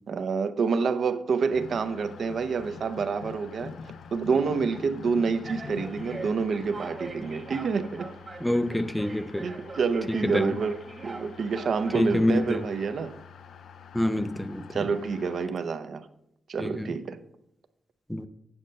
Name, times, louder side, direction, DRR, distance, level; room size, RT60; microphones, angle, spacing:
voice 1, 0.1-3.7 4.1-8.1 9.4-10.8 11.0-13.2 14.7-16.0 16.5-17.2, right 5 dB, 60° right, 0.6 m, -28 dB
sound 1, 1.5-15.5, left 6 dB, 80° left, 0.4 m, -45 dB
PA Advert and Announcement home depot, 2.4-3.0 3.7-3.9 4.7-4.9 5.4-12.7, right 3 dB, 30° right, 1.1 m, -43 dB
voice 2, 8.4-9.5 10.1-10.5 11.9-12.6 13.9-14.9 16.6-17.0 18.1-18.3, left 1 dB, 5° left, 0.4 m, -26 dB
8.5 x 6.4 x 5.3 m
wide cardioid pair, 155°, 0 cm